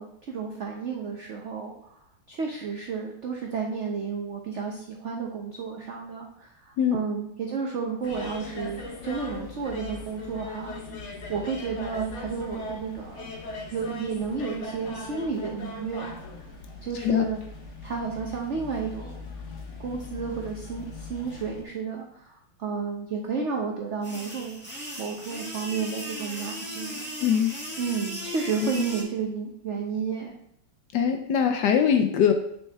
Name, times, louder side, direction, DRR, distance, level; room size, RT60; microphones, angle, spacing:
voice 1, 0.0-2.0 2.3-10.8 11.3-13.3 13.7-16.2 16.8-17.4 17.8-19.3 19.8-24.6 25.0-27.1 27.8-30.3, right 5 dB, 75° right, 0 dB, 0.6 m, -32 dB
sound 1, 8.0-21.6, left 3 dB, 50° left, 1.0 m, -39 dB
sound 2, 24.0-29.0, equal, 10° left, 0.8 m, -37 dB
voice 2, 27.2-27.6 30.9-32.3, left 8 dB, 75° left, 5 dB, 1.1 m, -22 dB
8.8 x 4.2 x 3.5 m, 0.73 s
omnidirectional pair, 2.2 m